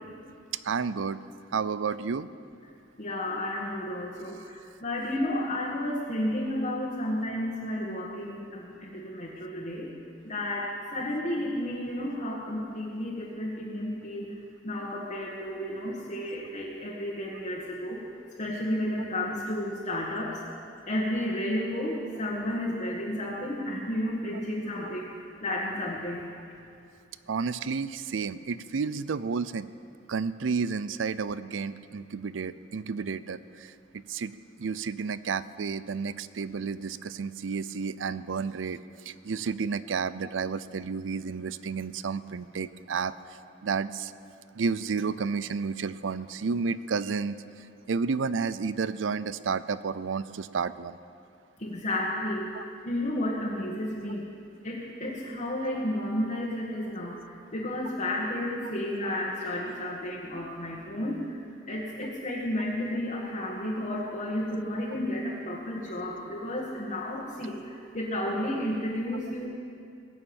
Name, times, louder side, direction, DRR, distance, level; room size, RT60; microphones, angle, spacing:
voice 1, 0.6-1.2 1.5-2.3 27.3-29.7 30.1-33.7 34.1-34.3 34.6-38.8 39.1-43.1 43.6-44.1 44.6-47.4 47.9-51.0 52.5-52.6, right 5 dB, 90° right, 16 dB, 0.5 m, -31 dB
voice 2, 3.0-9.9 10.2-14.4 14.6-18.0 18.4-20.4 20.9-26.2 51.6-54.3 54.6-61.4 61.7-69.5, left 1 dB, 40° left, -6 dB, 1.8 m, -32 dB
21.0 x 7.2 x 8.8 m, 2.4 s
head